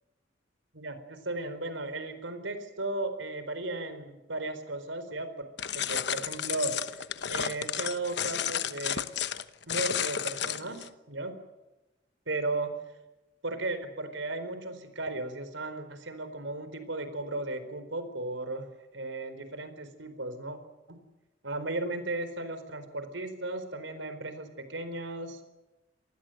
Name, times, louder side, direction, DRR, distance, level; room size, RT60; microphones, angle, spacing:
voice 1, 0.7-5.5 5.7-9.1 9.7-11.3 12.3-12.7 13.4-18.7 18.9-20.6 20.9-21.0 21.4-25.4, right 2 dB, 85° right, 10 dB, 4.2 m, -35 dB
sound 1, 5.6-10.9, left 9 dB, 60° left, 1.0 m, -32 dB
27.0 x 20.0 x 7.9 m, 1.0 s
head